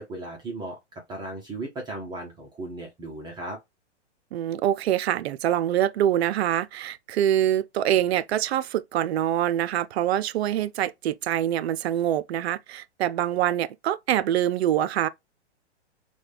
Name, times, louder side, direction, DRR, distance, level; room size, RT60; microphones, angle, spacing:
voice 1, 0.0-3.6, right 2 dB, 10° right, 0.5 m, -36 dB
voice 2, 4.3-15.1, right 11 dB, 65° right, 0.5 m, -25 dB
4.8 x 2.2 x 3.2 m
hypercardioid pair, 130°, 35 cm